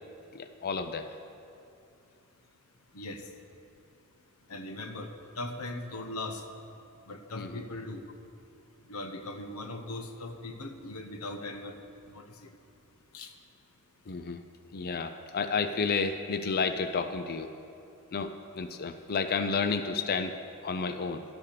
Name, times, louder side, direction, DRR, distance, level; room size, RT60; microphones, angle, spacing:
voice 1, 0.3-1.1 7.4-7.5 14.1-14.4 14.7-17.5 18.1-20.3 20.6-21.2, left 5 dB, 45° left, 8 dB, 0.5 m, -31 dB
voice 2, 2.9-3.3 4.5-6.4 7.1-8.0 8.9-11.8 12.1-12.5 13.1-13.3, left 2 dB, 80° left, 7 dB, 1.0 m, -39 dB
12.0 x 8.5 x 6.7 m, 2.6 s
head